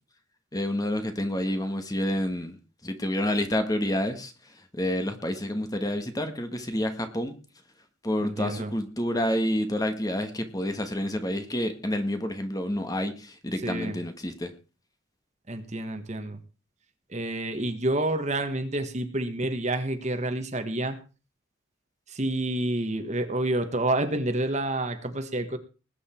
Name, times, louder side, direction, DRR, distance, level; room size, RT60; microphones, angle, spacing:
voice 1, 0.5-2.5 2.8-7.4 8.0-14.5, left 1 dB, 15° left, 7 dB, 1.6 m, -29 dB
voice 2, 8.2-8.7 13.6-14.0 15.5-16.4 17.1-21.0 22.1-25.6, right 1 dB, 35° right, 8 dB, 1.6 m, -28 dB
20.0 x 9.3 x 4.5 m, 0.34 s
head